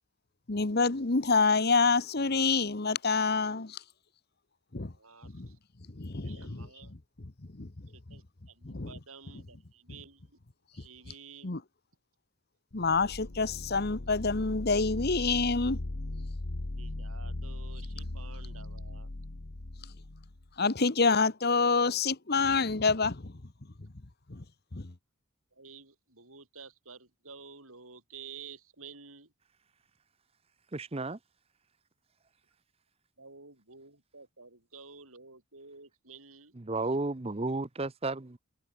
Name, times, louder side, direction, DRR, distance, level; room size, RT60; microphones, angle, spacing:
voice 1, 0.5-3.8 4.7-4.9 5.2-5.5 5.9-6.7 7.6-7.7 8.6-8.9 11.4-11.6 12.7-15.8 20.6-23.3 24.3-24.4 24.7-24.9, left 4 dB, 45° left, 1.1 m, -27 dB
voice 2, 4.9-5.6 6.2-6.9 7.9-10.4 10.7-11.6 16.7-19.1 25.5-29.3 33.2-36.5, right 5 dB, 75° right, 7.7 m, -51 dB
sound 1, 12.7-20.5, left 2 dB, 65° left, 1.3 m, -39 dB
voice 3, 30.7-31.2 36.7-38.4, right 2 dB, 25° right, 0.7 m, -32 dB
head